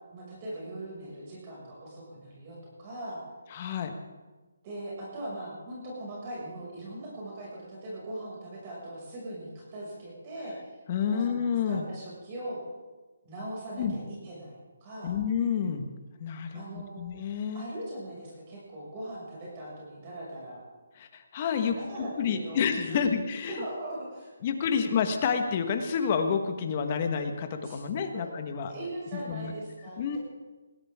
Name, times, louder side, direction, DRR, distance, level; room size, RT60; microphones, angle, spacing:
voice 1, 0.1-3.2 4.6-10.7 11.0-12.6 13.2-15.1 16.5-17.0 17.5-20.6 21.6-23.1 23.5-24.3 27.6-28.3 28.6-30.2, right 1 dB, 25° right, -5 dB, 6.3 m, -40 dB
voice 2, 3.5-3.9 10.9-11.8 13.7-14.0 15.0-15.9 16.2-17.7 21.0-21.8 22.2-23.6 24.4-28.7 29.3-29.5 30.0-30.2, left 7 dB, 30° left, 6 dB, 1.5 m, -29 dB
21.0 x 16.0 x 3.7 m, 1.3 s
hypercardioid pair, 160°, 0 cm